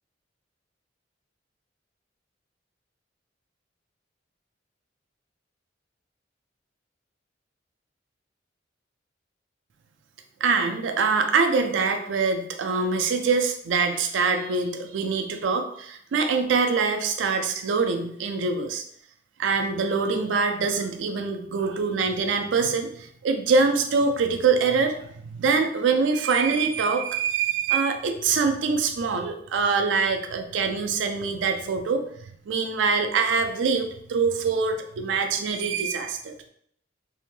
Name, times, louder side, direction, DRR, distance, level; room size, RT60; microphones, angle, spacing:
voice 1, 10.4-18.8 19.4-32.0 32.5-36.3, right 4 dB, 80° right, 6 dB, 0.4 m, -24 dB
2.7 x 2.1 x 3.1 m, 0.68 s
head